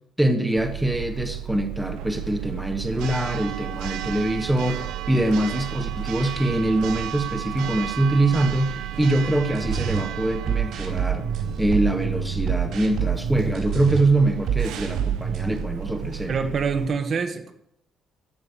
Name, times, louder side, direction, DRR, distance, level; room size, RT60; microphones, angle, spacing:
voice 1, 0.2-11.3 11.6-16.4, right 1 dB, 5° right, 6 dB, 1.1 m, -24 dB
Church bell, 0.6-16.9, right 11 dB, 90° right, 0.9 m, -33 dB
sound 1, 9.5-10.0 10.5-14.0 14.4-15.6, right 7 dB, 60° right, 4.4 m, -27 dB
voice 2, 16.3-17.5, right 5 dB, 35° right, 7 dB, 1.3 m, -25 dB
14.5 x 11.0 x 6.8 m, 0.78 s
cardioid pair, 175°, 0 cm